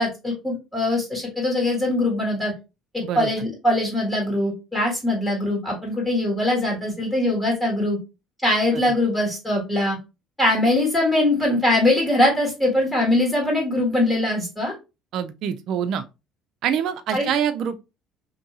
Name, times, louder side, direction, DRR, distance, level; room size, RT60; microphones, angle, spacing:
voice 1, 0.0-2.5 3.1-8.0 8.4-10.0 10.4-14.7 17.1-17.3, left 1 dB, 10° left, 1.5 m, -22 dB
voice 2, 15.1-16.1 16.6-17.8, right 8 dB, 60° right, 0.3 m, -25 dB
2.6 x 2.6 x 2.7 m
cardioid pair, 100°, 0 cm